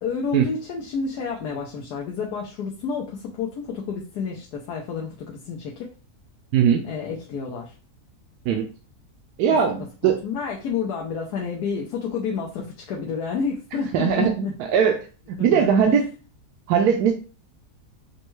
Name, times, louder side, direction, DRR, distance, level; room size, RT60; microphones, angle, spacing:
voice 1, 0.0-5.9 6.8-7.7 9.5-9.6 10.0-14.5 15.4-16.1, left 5 dB, 85° left, -1 dB, 1.2 m, -30 dB
voice 2, 9.4-10.1 13.9-14.5 14.7-15.0 15.3-16.0 16.7-17.1, right 7 dB, 85° right, 3 dB, 1.1 m, -19 dB
5.2 x 2.3 x 3.1 m, 0.36 s
omnidirectional pair, 1.7 m